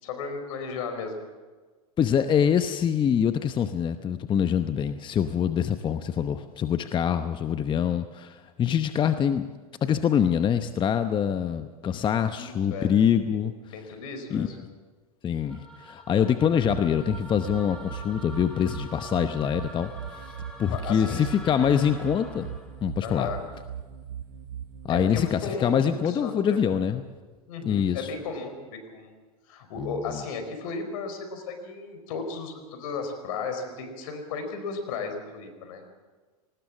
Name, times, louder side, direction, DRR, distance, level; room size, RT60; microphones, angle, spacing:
voice 1, 0.0-1.1 12.3-12.9 13.7-14.5 20.7-21.3 23.0-23.5 24.9-26.8 27.5-29.1 29.5-35.8, left 4 dB, 65° left, 7 dB, 4.5 m, -35 dB
voice 2, 2.0-9.4 9.8-13.5 14.3-14.7 15.2-20.3 20.6-22.5 22.8-23.3 24.8-27.0 27.6-28.1 29.8-30.2, left 8 dB, 25° left, 10 dB, 0.9 m, -25 dB
sound 1, 15.5-22.7, equal, 5° left, 3.7 m, -44 dB
sound 2, 16.5-25.3, right 9 dB, 80° right, 1.6 m, -39 dB
19.5 x 19.0 x 7.3 m, 1.4 s
hypercardioid pair, 115°, 19 cm